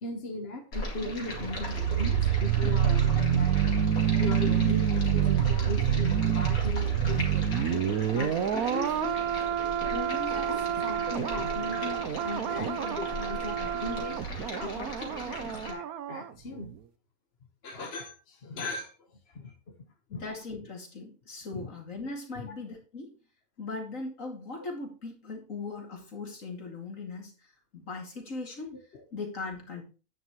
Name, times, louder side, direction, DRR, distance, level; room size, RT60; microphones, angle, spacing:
voice 1, 0.0-3.6 3.8-9.3 9.9-14.2 14.6-16.7 17.6-18.9 19.3-19.7 20.1-20.2 21.5-21.7 22.4-22.5 28.7-28.8, left 2 dB, 50° left, 3 dB, 1.5 m, -38 dB
Stream, 0.7-15.7, left 1 dB, 85° left, 3.0 m, -39 dB
sound 1, 1.3-16.3 16.6-16.7, right 9 dB, 90° right, 1.3 m, -27 dB
voice 2, 20.1-23.1 23.6-27.3 27.7-28.7 29.1-29.8, left 3 dB, 65° left, 1 dB, 2.9 m, -39 dB
10.5 x 9.5 x 3.1 m, 0.36 s
omnidirectional pair, 1.5 m